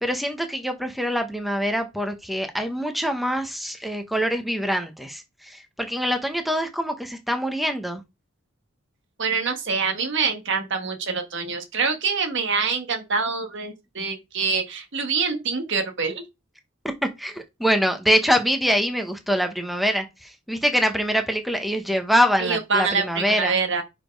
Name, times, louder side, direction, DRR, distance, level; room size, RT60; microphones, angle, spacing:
voice 1, 0.0-8.0 17.0-23.6, equal, ahead, 0.9 m, -24 dB
voice 2, 9.2-16.2 22.4-23.8, right 5 dB, 65° right, 1.3 m, -25 dB
5.0 x 4.2 x 5.2 m
head